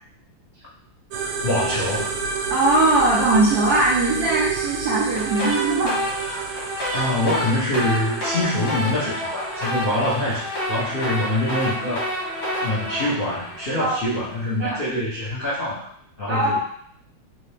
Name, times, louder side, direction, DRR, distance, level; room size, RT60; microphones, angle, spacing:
sound 1, 1.1-14.8, right 6 dB, 90° right, 1.5 m, -31 dB
voice 1, 1.4-2.2 6.9-12.0 12.6-15.9 16.2-16.6, left 1 dB, 80° left, -9 dB, 0.4 m, -25 dB
voice 2, 2.5-6.0 9.7-9.8 13.8-14.0 14.6-14.8 16.3-16.6, right 2 dB, 70° right, -5 dB, 0.9 m, -20 dB
sound 2, 5.2-14.3, equal, 65° left, 2.1 m, -29 dB
3.9 x 2.7 x 3.3 m, 0.65 s
omnidirectional pair, 2.4 m